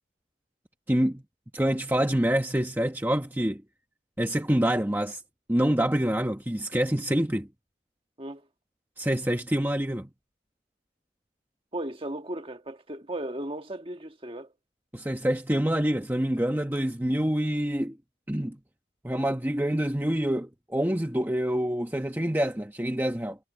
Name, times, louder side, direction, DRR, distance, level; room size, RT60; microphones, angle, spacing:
voice 1, 0.9-1.2 1.5-3.6 4.2-5.2 5.5-7.5 9.0-10.1 14.9-18.0 18.3-18.6 19.0-23.4, right 1 dB, 10° right, 1.0 m, -26 dB
voice 2, 11.7-14.5, right 1 dB, 25° right, 1.5 m, -36 dB
head